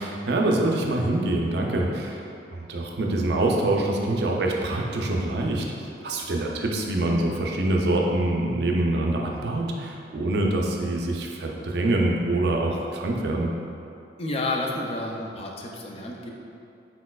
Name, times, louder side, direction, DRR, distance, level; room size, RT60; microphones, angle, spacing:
voice 1, 0.0-5.7 6.0-13.5, right 2 dB, 60° right, 0 dB, 0.4 m, -25 dB
voice 2, 14.2-16.3, left 2 dB, 35° left, 0 dB, 0.4 m, -30 dB
4.3 x 4.0 x 2.3 m, 2.6 s
head